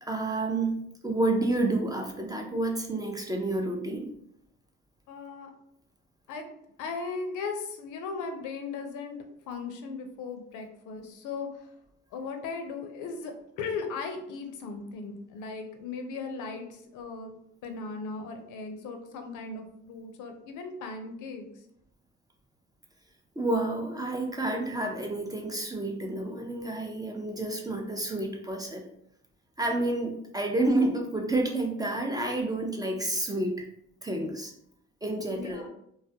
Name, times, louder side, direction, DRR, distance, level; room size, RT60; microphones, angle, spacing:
voice 1, 0.0-4.1 23.4-28.8 29.6-33.7 34.0-34.5 35.0-35.6, right 2 dB, 15° right, 1 dB, 0.3 m, -29 dB
voice 2, 5.1-5.5 6.3-6.5 6.8-9.2 9.5-11.7 12.1-17.4 17.6-21.5 35.3-35.7, left 4 dB, 85° left, 5 dB, 0.5 m, -37 dB
2.3 x 2.1 x 2.6 m, 0.74 s
cardioid pair, 90°, 30 cm